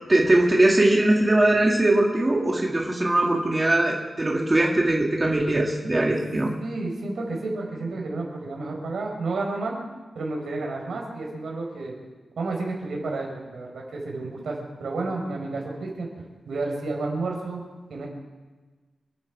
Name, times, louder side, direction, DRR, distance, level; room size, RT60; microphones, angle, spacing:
voice 1, 0.1-6.5, right 1 dB, 20° right, -1 dB, 2.0 m, -21 dB
voice 2, 6.6-9.8 10.1-11.9 12.4-16.1 16.5-17.6 17.9-18.1, right 3 dB, 80° right, 0 dB, 4.7 m, -31 dB
28.0 x 9.7 x 4.8 m, 1.3 s
wide cardioid pair, 170°, 0 cm